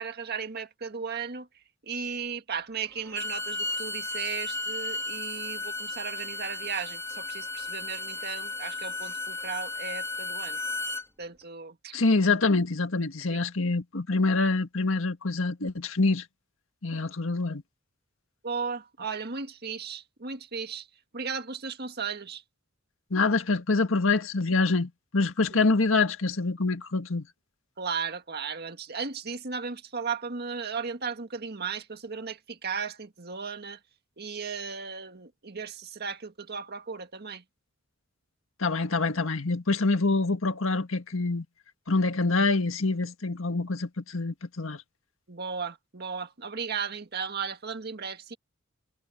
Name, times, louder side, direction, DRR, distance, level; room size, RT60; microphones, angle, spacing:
voice 1, 0.0-1.5 1.8-10.6 11.2-12.0 13.3-13.4 18.4-20.9 21.1-22.4 25.5-25.6 27.8-33.8 34.2-37.4 45.3-48.4, right 5 dB, 50° right, 1.7 m, -35 dB
Bowed string instrument, 3.0-11.0, left 2 dB, 15° left, 2.2 m, -34 dB
voice 2, 11.9-16.2 16.8-17.6 23.1-27.3 38.6-41.5 41.9-44.8, left 3 dB, 75° left, 1.8 m, -26 dB
head